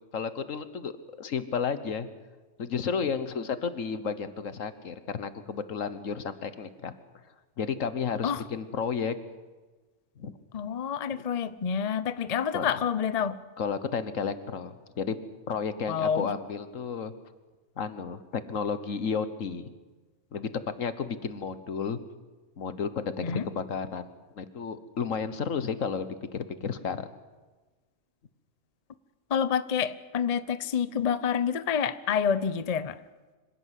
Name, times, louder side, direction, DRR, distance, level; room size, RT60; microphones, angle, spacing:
voice 1, 0.0-2.1 2.6-7.0 7.6-9.1 10.2-10.3 11.1-11.2 12.5-12.7 13.6-15.2 15.5-17.1 17.8-19.7 20.3-20.5 20.8-22.0 22.6-24.1 24.3-27.1, left 6 dB, 75° left, 12 dB, 1.6 m, -32 dB
voice 2, 10.5-13.4 15.9-16.3 23.2-23.4 29.3-33.0, left 7 dB, 35° left, 14 dB, 0.7 m, -28 dB
25.5 x 17.0 x 8.3 m, 1.3 s
omnidirectional pair, 1.4 m